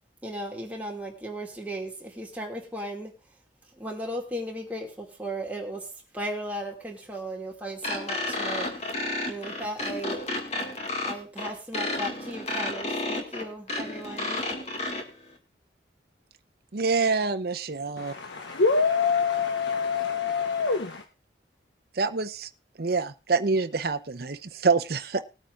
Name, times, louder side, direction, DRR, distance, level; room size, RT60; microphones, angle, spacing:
voice 1, 0.2-3.1 3.7-9.0 9.2-10.4 11.0-14.5, right 1 dB, 10° right, 0 dB, 2.2 m, -36 dB
sound 1, 7.8-15.0, left 2 dB, 35° left, 2.0 m, -31 dB
voice 2, 16.7-18.1 21.9-22.5 22.8-25.2, right 4 dB, 55° right, 9 dB, 0.7 m, -26 dB
voice 3, 18.0-21.0, left 5 dB, 80° left, 6 dB, 1.0 m, -25 dB
20.0 x 9.1 x 2.5 m, 0.30 s
head